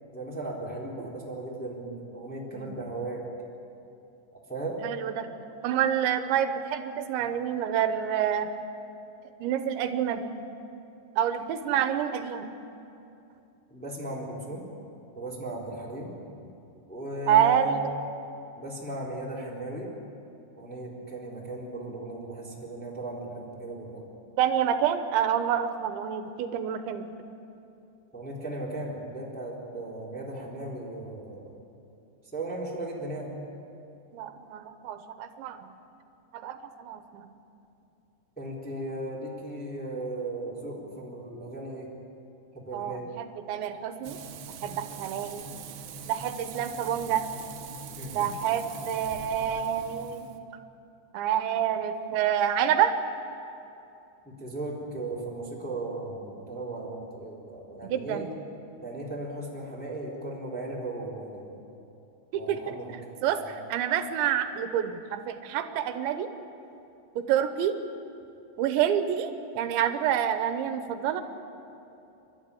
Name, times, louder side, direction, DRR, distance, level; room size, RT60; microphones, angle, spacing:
voice 1, 0.1-3.2 4.5-4.8 13.7-14.7 15.1-16.4 16.9-17.7 18.6-19.9 20.6-24.1 28.1-31.5 32.3-33.3 38.4-41.9 42.5-43.1 47.9-48.3 54.2-58.3 58.8-61.6 62.3-63.0 63.4-63.5, right 2 dB, ahead, -4 dB, 2.9 m, -37 dB
voice 2, 4.8-8.5 9.4-10.4 11.2-12.5 17.3-17.9 24.4-27.1 34.1-35.7 36.3-37.3 42.7-45.5 46.1-47.3 48.1-50.3 51.1-53.0 57.9-58.3 62.3-62.8 63.2-66.3 67.2-67.8 68.6-71.2, right 9 dB, 85° right, 9 dB, 3.2 m, -28 dB
Frying (food), 44.0-50.4, right 5 dB, 70° right, 2.8 m, -42 dB
30.0 x 12.5 x 10.0 m, 2.8 s
omnidirectional pair, 5.3 m